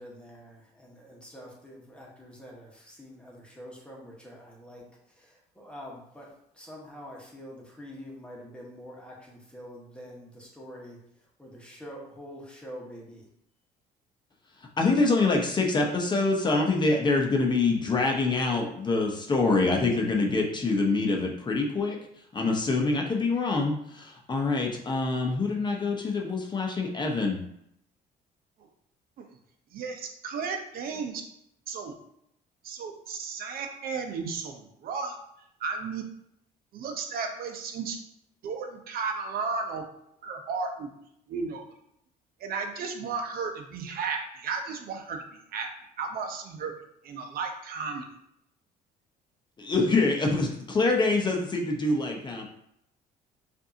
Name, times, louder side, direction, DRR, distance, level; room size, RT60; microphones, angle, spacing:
voice 1, 0.0-6.3 6.5-13.3, equal, 5° left, -3 dB, 1.2 m, -46 dB
voice 2, 14.8-22.0 22.3-27.4 49.6-52.5, left 3 dB, 25° left, 0 dB, 0.8 m, -25 dB
voice 3, 29.7-31.2 31.7-31.9 32.6-35.2 35.6-36.0 36.7-38.0 38.4-39.8 40.2-40.9 41.3-41.6 42.4-45.7 46.0-46.7 47.0-48.0, right 5 dB, 60° right, 4 dB, 0.8 m, -34 dB
5.3 x 2.7 x 2.7 m, 0.75 s
cardioid pair, 110°, 17 cm